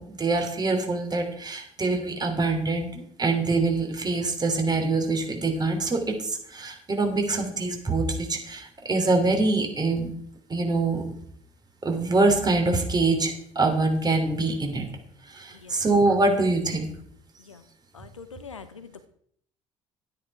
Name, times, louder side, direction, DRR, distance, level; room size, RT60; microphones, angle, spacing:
voice 1, 0.0-10.1 10.5-11.0 11.8-14.9 15.3-16.9, right 3 dB, 25° right, 4 dB, 3.2 m, -24 dB
voice 2, 17.9-19.1, left 5 dB, 85° left, 11 dB, 0.8 m, -44 dB
12.0 x 9.9 x 4.7 m, 0.65 s
figure-of-eight pair, 55°, 16 cm